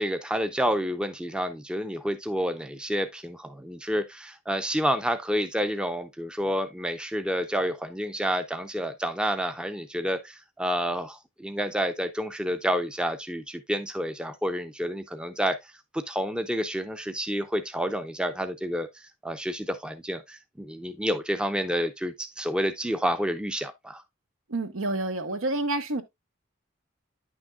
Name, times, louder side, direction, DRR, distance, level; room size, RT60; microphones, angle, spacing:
voice 1, 0.0-24.0, equal, 5° right, 0.5 m, -29 dB
voice 2, 24.5-26.0, right 2 dB, 80° right, 1.1 m, -28 dB
9.8 x 6.2 x 2.3 m
head